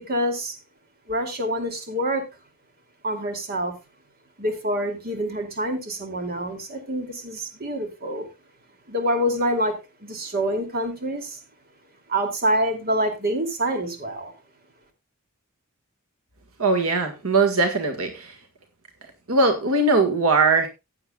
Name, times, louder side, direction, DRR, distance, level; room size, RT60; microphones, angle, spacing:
voice 1, 0.1-0.6 1.1-2.3 3.0-3.7 4.4-8.3 8.9-11.4 12.1-14.3, equal, 45° right, 2.7 m, -26 dB
voice 2, 16.6-18.3 19.3-20.7, right 3 dB, 75° right, 1.8 m, -20 dB
15.5 x 9.3 x 2.3 m
head